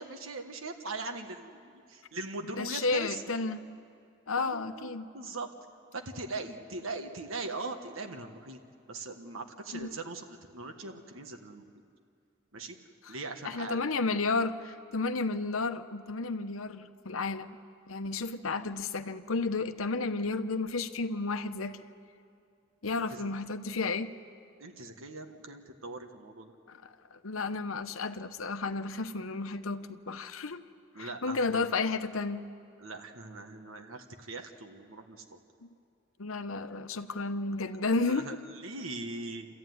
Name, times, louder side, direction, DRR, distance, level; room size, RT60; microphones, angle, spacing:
voice 1, 0.0-3.4 4.4-5.5 5.9-8.6 8.9-11.7 12.5-12.8 13.1-13.8 23.1-23.3 24.6-26.5 30.9-31.6 32.8-35.4 37.9-39.5, right 3 dB, 85° right, 5 dB, 1.4 m, -41 dB
voice 2, 2.5-3.6 4.3-5.0 9.8-9.9 13.0-13.1 13.4-17.6 17.9-21.8 22.8-24.1 26.7-30.6 31.0-32.5 35.6-35.7 36.2-38.4, left 3 dB, 85° left, 9 dB, 0.9 m, -32 dB
28.5 x 14.0 x 9.4 m, 2.4 s
head